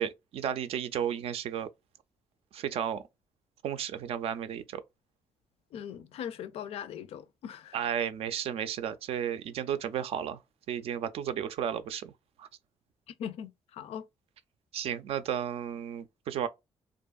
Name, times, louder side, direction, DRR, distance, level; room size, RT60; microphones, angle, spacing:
voice 1, 0.0-1.7 2.5-3.0 3.6-4.8 7.7-10.4 10.7-12.1 12.4-12.5 14.7-16.5, right 9 dB, 70° right, 0.4 m, -33 dB
voice 2, 5.7-7.8 13.2-14.1, left 9 dB, 70° left, 0.4 m, -40 dB
2.6 x 2.4 x 2.2 m
cardioid pair, 95°, 10 cm